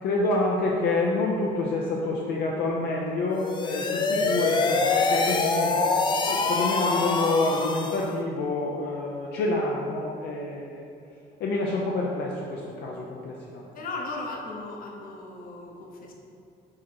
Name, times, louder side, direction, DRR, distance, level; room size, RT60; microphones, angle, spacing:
voice 1, 0.0-5.8 6.2-10.9 11.4-13.7, left 2 dB, 75° left, -2 dB, 0.6 m, -28 dB
sound 1, 3.3-8.1, left 3 dB, 25° left, 0.5 m, -25 dB
voice 2, 4.0-4.3 13.7-16.1, left 3 dB, 55° left, 0 dB, 1.0 m, -37 dB
4.8 x 4.2 x 4.6 m, 2.5 s
cardioid pair, 110°, 17 cm